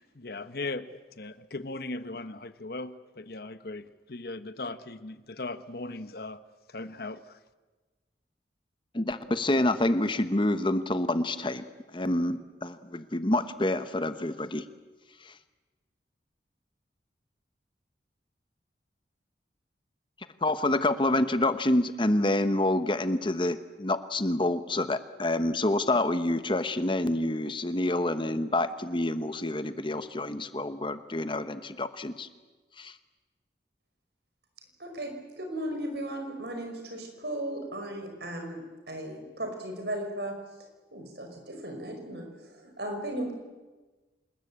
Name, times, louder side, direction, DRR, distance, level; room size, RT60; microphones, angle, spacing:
voice 1, 0.0-6.4 6.7-7.4, left 2 dB, 60° left, 12 dB, 1.1 m, -38 dB
voice 2, 8.9-11.6 11.9-14.6 15.3-15.4 20.4-32.3 32.8-32.9, left 1 dB, 30° left, 11 dB, 1.0 m, -27 dB
voice 3, 34.8-38.6 38.9-40.4 40.9-43.3, right 1 dB, 70° right, 5 dB, 5.6 m, -36 dB
27.0 x 20.5 x 8.7 m, 1.3 s
head